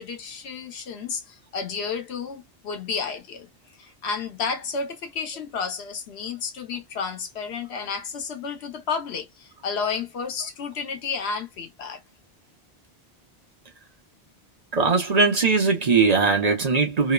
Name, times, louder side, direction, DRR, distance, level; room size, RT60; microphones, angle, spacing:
voice 1, 0.0-3.5 3.8-12.0, left 5 dB, 90° left, 1.0 m, -31 dB
voice 2, 14.7-17.1, right 4 dB, 45° right, 0.8 m, -20 dB
3.0 x 2.0 x 2.2 m
omnidirectional pair, 1.1 m